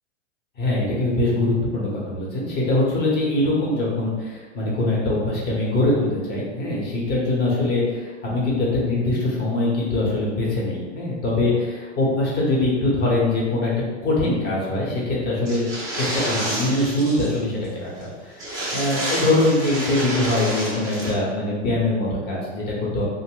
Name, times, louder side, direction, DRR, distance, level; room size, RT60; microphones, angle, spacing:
voice 1, 0.6-13.7 14.0-15.7 16.0-18.4 18.7-23.0, left 2 dB, 25° left, -5 dB, 0.8 m, -23 dB
sound 1, 15.4-17.4 17.6-17.7 18.0-18.1 18.4-21.1, right 1 dB, 10° right, 0.3 m, -29 dB
2.5 x 2.0 x 3.6 m, 1.4 s
hypercardioid pair, 125°, 37 cm